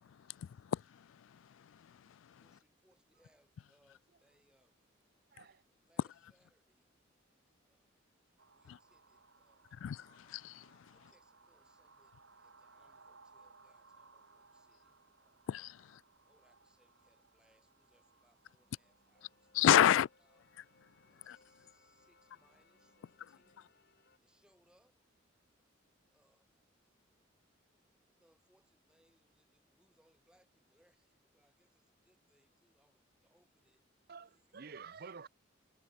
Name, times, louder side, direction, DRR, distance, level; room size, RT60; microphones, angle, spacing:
voice 1, 0.0-2.4 5.4-5.5 8.7-8.8 9.8-10.9 15.5-16.0 19.5-20.1 21.3-21.4, left 10 dB, 75° left, 0.3 m, -32 dB
voice 2, 2.4-4.8 5.8-6.9 7.7-8.0 8.5-9.7 10.9-15.5 16.2-19.8 20.2-20.4 21.0-23.8 24.2-24.9 26.1-26.6 28.1-33.8 34.2-34.7 35.1-35.2, equal, 5° right, 7.4 m, -74 dB
voice 3, 5.3-5.6 34.1-35.3, right 5 dB, 50° right, 0.7 m, -50 dB
sound 1, 8.4-23.0, right 4 dB, 80° right, 6.0 m, -65 dB
sound 2, 18.6-24.2, left 3 dB, 55° left, 6.5 m, -69 dB
head